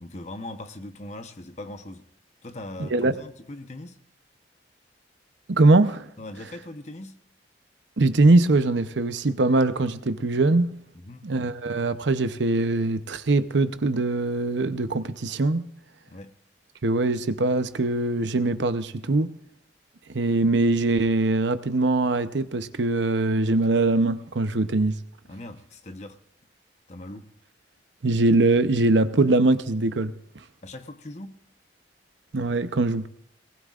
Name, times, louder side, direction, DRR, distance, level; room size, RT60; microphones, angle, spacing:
voice 1, 0.0-2.0 2.4-4.0 6.2-7.2 11.0-11.3 16.1-16.3 25.3-26.2 26.9-27.3 30.6-31.4, left 1 dB, 40° left, 0.9 m, -40 dB
voice 2, 2.8-3.2 5.5-6.1 8.0-10.8 11.2-15.6 16.8-19.3 20.1-25.0 28.0-30.2 32.3-33.1, right 2 dB, 80° right, 0.8 m, -22 dB
19.5 x 19.0 x 2.5 m
head